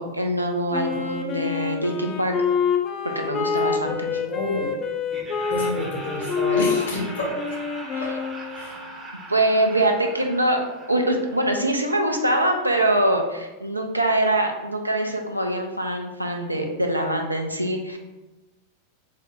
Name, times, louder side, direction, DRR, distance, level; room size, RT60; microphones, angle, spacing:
voice 1, 0.0-2.4 3.1-3.9 7.9-8.0 9.3-10.6 10.9-18.0, right 1 dB, 85° right, 3 dB, 0.4 m, -23 dB
Wind instrument woodwind instrument, 0.7-8.8, left 6 dB, 30° left, 0.4 m, -27 dB
voice 2, 3.9-4.8 5.5-7.6 8.0-8.1 8.5-8.8, left 1 dB, 70° left, -2 dB, 1.0 m, -29 dB
Laughter, 5.1-12.0, right 2 dB, 20° right, 0.6 m, -41 dB
3.6 x 2.0 x 3.4 m, 1.1 s
figure-of-eight pair, 90°, 0 cm